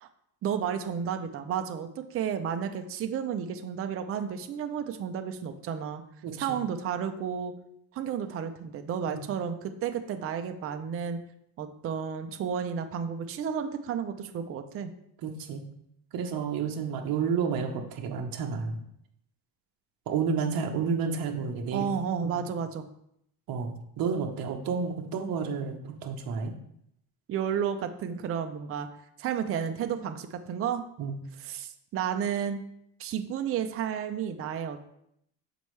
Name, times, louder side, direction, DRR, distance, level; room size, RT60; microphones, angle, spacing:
voice 1, 0.4-6.0 6.4-7.5 7.9-11.2 11.6-14.9 21.7-22.9 27.3-28.9 29.2-30.8 31.4-32.6 33.0-34.9, right 8 dB, 30° right, 7 dB, 0.5 m, -32 dB
voice 2, 15.2-15.6 16.1-18.8 20.1-21.9 22.2-22.4 23.5-26.5 31.0-31.2, right 6 dB, 50° right, 3 dB, 0.9 m, -31 dB
6.9 x 4.4 x 3.2 m, 0.75 s
cardioid pair, 125°, 46 cm